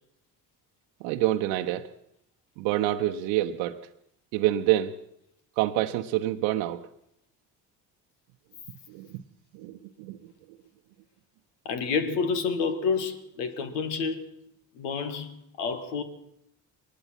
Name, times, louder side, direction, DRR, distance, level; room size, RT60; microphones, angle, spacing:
voice 1, 1.0-1.9 2.6-3.8 4.3-4.9 5.6-6.9 8.9-9.2 9.5-10.2, right 14 dB, 70° right, 0.9 m, -27 dB
voice 2, 11.7-14.3 14.7-16.0, left 5 dB, 80° left, 1.9 m, -29 dB
22.5 x 20.0 x 6.0 m
hypercardioid pair, 50°, 48 cm